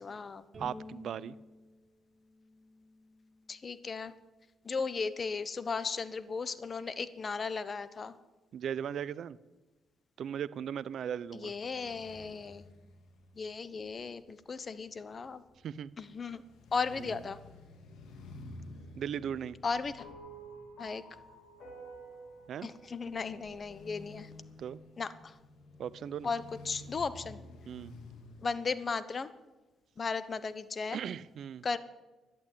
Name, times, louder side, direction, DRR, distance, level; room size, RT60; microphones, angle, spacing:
voice 1, 0.0-0.5 3.5-4.1 4.6-8.2 11.3-12.6 13.4-15.4 16.0-16.4 16.7-17.4 19.6-20.1 20.8-21.0 22.6-24.3 25.0-25.4 26.2-27.4 28.4-29.3 30.0-31.0 31.6-31.8, left 4 dB, 40° left, 14 dB, 0.9 m, -36 dB
Bowed string instrument, 0.5-3.8, left 1 dB, 35° right, 6.2 m, -52 dB
voice 2, 0.6-1.4 8.5-9.4 10.2-11.5 15.6-15.9 17.0-17.1 19.0-19.6 22.5-22.7 24.6-24.8 25.8-26.3 27.7-28.0 30.9-31.7, right 8 dB, 65° right, 20 dB, 0.5 m, -37 dB
sound 1, 11.3-28.5, left 2 dB, 80° left, 2.2 m, -53 dB
sound 2, 20.0-24.4, right 3 dB, 60° left, 5.4 m, -51 dB
12.0 x 10.5 x 8.5 m, 1.1 s
cardioid pair, 90°, 0 cm